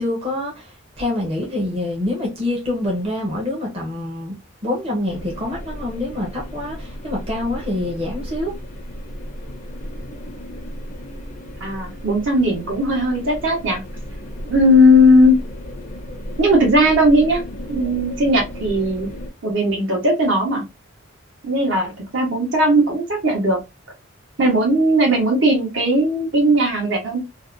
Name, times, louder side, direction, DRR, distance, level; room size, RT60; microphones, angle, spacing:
voice 1, 0.0-4.4 4.6-8.6, left 1 dB, 30° right, 0.7 m, -26 dB
sound 1, 5.1-19.3, equal, 35° left, 0.4 m, -34 dB
voice 2, 11.6-13.8 14.5-15.4 16.4-17.4 17.7-19.1 19.4-20.6 21.4-23.6 24.4-27.2, equal, 65° right, 0.9 m, -17 dB
2.6 x 2.1 x 2.4 m
head